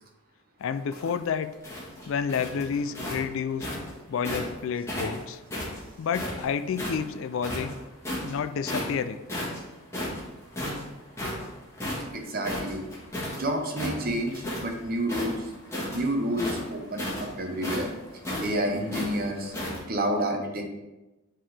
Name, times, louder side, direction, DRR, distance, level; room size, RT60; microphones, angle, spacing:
voice 1, 0.6-1.5 2.1-3.7 4.1-5.4 6.0-7.8 8.2-9.2, left 6 dB, 60° left, 10 dB, 0.3 m, -30 dB
sound 1, 0.7-4.5 4.9-7.0 7.4-8.3 8.6-9.0 9.3-13.4 13.7-14.7 15.0-19.8, left 1 dB, 10° left, 1.5 m, -33 dB
voice 2, 12.1-12.8 13.3-15.5 15.9-17.9 18.4-19.5 19.9-20.6, right 1 dB, 40° right, 3 dB, 0.8 m, -29 dB
8.4 x 3.8 x 3.3 m, 1.0 s
head